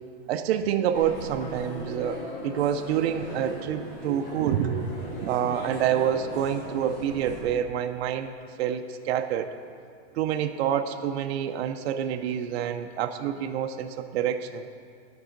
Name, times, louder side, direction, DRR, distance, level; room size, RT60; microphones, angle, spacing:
voice 1, 0.3-8.3 8.6-9.5 10.1-14.7, right 9 dB, 65° right, 7 dB, 0.6 m, -27 dB
sound 1, 0.9-7.4, left 1 dB, 35° left, 1.4 m, -39 dB
12.0 x 5.4 x 3.8 m, 2.2 s
supercardioid pair, 170°, 35 cm